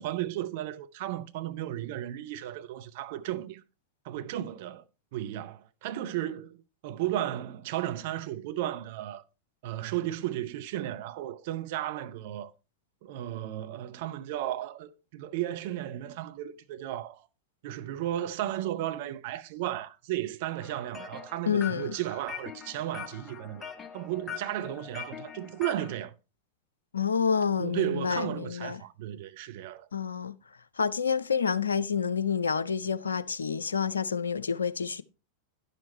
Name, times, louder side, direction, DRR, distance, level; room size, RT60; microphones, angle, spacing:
voice 1, 0.0-3.6 4.0-4.8 5.1-9.2 9.6-12.5 13.0-17.3 17.6-23.6 23.9-26.1 27.6-29.9, right 13 dB, 60° right, 0.7 m, -34 dB
sound 1, 20.6-25.9, left 8 dB, 20° left, 1.1 m, -43 dB
voice 2, 21.5-22.0 26.9-28.8 29.9-30.4 30.8-35.0, left 6 dB, 85° left, 0.5 m, -28 dB
10.5 x 6.7 x 4.2 m
figure-of-eight pair, 90°, 0 cm